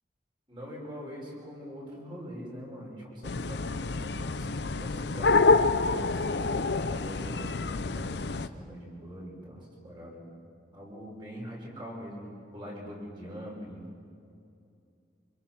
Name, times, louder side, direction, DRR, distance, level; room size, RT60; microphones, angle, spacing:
voice 1, 0.5-10.2 10.7-13.9, equal, 25° right, -3 dB, 5.6 m, -43 dB
sound 1, 3.2-8.5, left 3 dB, 65° left, 0.6 m, -27 dB
26.5 x 24.5 x 6.1 m, 2.5 s
head